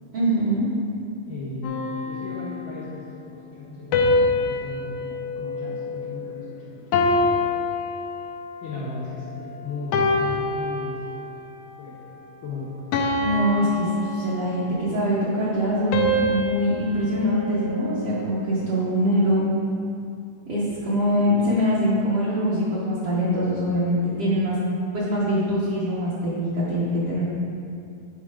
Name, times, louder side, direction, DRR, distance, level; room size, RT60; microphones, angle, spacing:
voice 1, 0.1-0.7 13.2-19.4 20.5-24.5 24.9-27.2, equal, 60° right, -8 dB, 1.6 m, -23 dB
voice 2, 1.3-7.4 8.6-11.3 11.8-12.0 12.4-12.7, left 3 dB, 60° left, -9 dB, 1.3 m, -36 dB
sound 1, 1.6-2.9 3.9-6.4 6.9-8.6 9.2-9.5 9.9-11.5 11.9-12.2 12.9-14.8 15.9-18.3, left 2 dB, 80° left, 1.8 m, -26 dB
9.0 x 4.4 x 5.0 m, 2.5 s
omnidirectional pair, 3.9 m